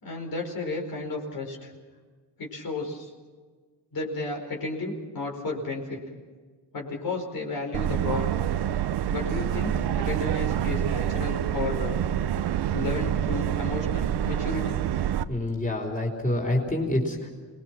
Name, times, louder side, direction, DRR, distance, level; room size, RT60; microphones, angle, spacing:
voice 1, 0.0-1.7 2.4-3.1 3.9-6.0 6.7-8.4 9.1-12.0 12.7-14.8, left 3 dB, 55° left, 0 dB, 4.9 m, -33 dB
Subway metro underground, 7.7-15.2, right 10 dB, 70° right, 0.9 m, -27 dB
voice 2, 15.3-17.3, left 1 dB, 20° left, 1 dB, 4.5 m, -27 dB
27.0 x 20.5 x 6.1 m, 1.5 s
cardioid pair, 100°, 41 cm